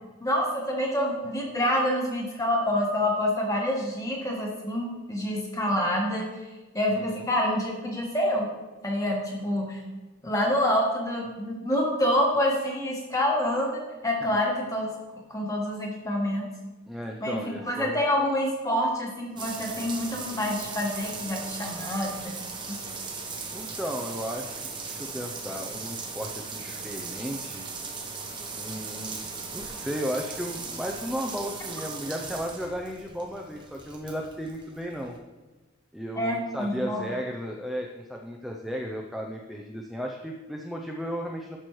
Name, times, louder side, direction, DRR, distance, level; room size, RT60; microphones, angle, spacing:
voice 1, 0.2-6.3 6.7-8.5 8.8-9.8 10.2-14.9 15.3-16.5 17.2-22.3 22.7-22.8 36.1-37.0, left 1 dB, 15° left, -1 dB, 1.4 m, -27 dB
voice 2, 16.9-18.0 23.5-27.6 28.5-29.3 29.5-35.2 35.9-41.6, equal, ahead, 0 dB, 0.4 m, -34 dB
sound 1, 19.4-35.2, right 4 dB, 20° right, 0.9 m, -38 dB
11.0 x 6.2 x 3.1 m, 1.2 s
head